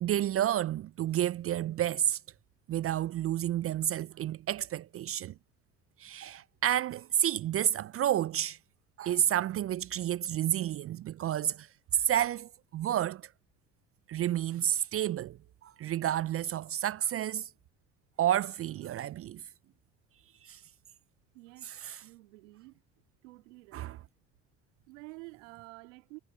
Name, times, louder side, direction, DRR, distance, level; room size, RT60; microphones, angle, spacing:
voice 1, 0.0-2.2 2.7-5.3 6.0-8.6 9.0-11.7 11.9-13.2 14.1-17.5 18.2-19.4 20.4-20.6 21.6-22.0 23.7-24.0, right 11 dB, 40° right, 0.4 m, -30 dB
voice 2, 21.3-21.7 22.0-22.8 23.2-23.9 24.9-26.2, right 24 dB, 85° right, 2.2 m, -50 dB
hypercardioid pair, 70°, 37 cm